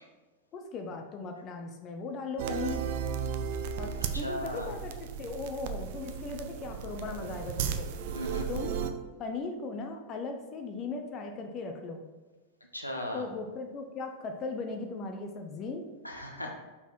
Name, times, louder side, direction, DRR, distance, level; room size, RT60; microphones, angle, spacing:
voice 1, 0.5-2.8 3.8-7.9 8.5-8.8 9.2-12.0 13.1-15.9, left 3 dB, 30° left, 4 dB, 0.7 m, -38 dB
sound 1, 2.4-8.9, right 7 dB, 50° right, 0.5 m, -35 dB
voice 2, 4.1-4.7 8.1-8.5 12.7-13.2 16.0-16.5, left 1 dB, 85° left, 1 dB, 1.0 m, -37 dB
5.6 x 4.4 x 4.4 m, 1.2 s
figure-of-eight pair, 90°, 0 cm